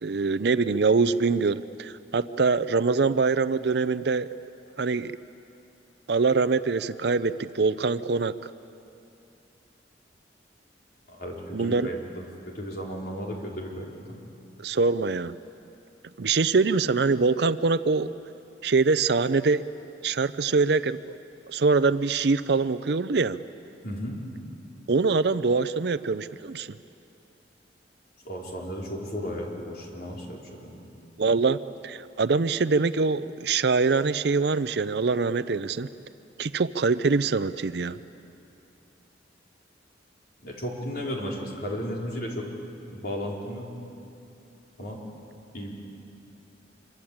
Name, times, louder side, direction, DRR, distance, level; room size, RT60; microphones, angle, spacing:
voice 1, 0.0-4.3 4.8-5.1 6.1-8.3 11.5-11.9 14.6-15.4 16.2-18.1 18.6-19.7 20.0-21.2 21.5-23.4 24.9-26.7 31.2-31.6 31.8-35.9 36.4-38.0, right 4 dB, 65° right, 13 dB, 0.5 m, -24 dB
voice 2, 11.1-13.9 23.8-24.2 28.2-30.8 40.4-42.5 42.9-43.7 44.8-45.0 45.5-45.7, equal, 55° left, -2 dB, 4.5 m, -34 dB
25.5 x 23.5 x 8.7 m, 2.8 s
head